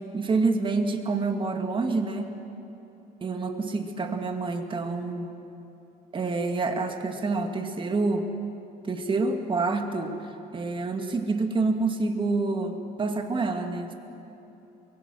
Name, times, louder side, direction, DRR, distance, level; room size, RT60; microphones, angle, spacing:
voice 1, 0.1-2.4 3.2-5.4 6.1-8.3 8.8-10.2 10.5-13.9, right 3 dB, 30° right, 4 dB, 2.2 m, -27 dB
23.5 x 22.5 x 6.4 m, 2.9 s
cardioid pair, 110°, 17 cm